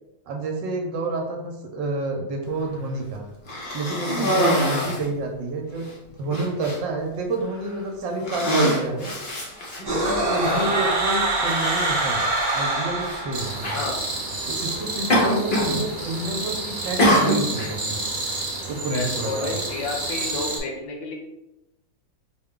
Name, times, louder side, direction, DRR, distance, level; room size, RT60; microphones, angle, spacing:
voice 1, 0.3-3.2 3.7-5.9 6.2-9.1 9.8-12.2 12.5-13.8 14.5-18.0 18.7-19.6, right 2 dB, 70° right, 1 dB, 1.3 m, -29 dB
Cough, 3.4-5.1 5.8-5.9 6.3-6.8 7.5-7.8 8.2-10.1 11.1-11.2 13.0-13.2 13.6-13.9 15.1-15.8 16.0-16.5 17.0-17.7, equal, 60° left, 0.5 m, -23 dB
sound 1, 9.8-13.8, right 2 dB, 20° right, 0.7 m, -24 dB
sound 2, 13.3-20.6, right 2 dB, 40° right, 1.0 m, -30 dB
voice 2, 15.2-15.5 18.9-21.2, left 3 dB, 75° left, 2 dB, 1.4 m, -30 dB
5.0 x 2.2 x 3.6 m, 0.93 s
omnidirectional pair, 2.2 m